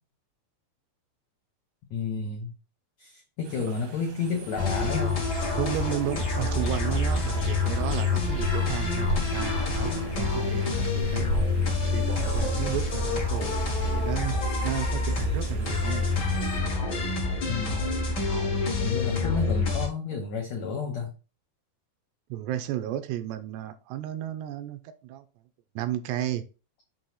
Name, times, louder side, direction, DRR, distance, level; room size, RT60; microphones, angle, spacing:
voice 1, 1.9-2.5 3.0-5.2 17.4-17.9 18.8-21.1, left 5 dB, 80° left, 1 dB, 1.6 m, -31 dB
sound 1, 3.4-16.6, right 3 dB, 65° right, 1.6 m, -38 dB
sound 2, 4.6-19.9, left 3 dB, 65° left, 1.0 m, -27 dB
voice 2, 5.6-11.3 11.8-14.4 14.6-16.1 22.3-25.3 25.8-26.4, right 12 dB, 85° right, 10 dB, 2.7 m, -33 dB
7.0 x 2.9 x 5.6 m, 0.33 s
omnidirectional pair, 4.7 m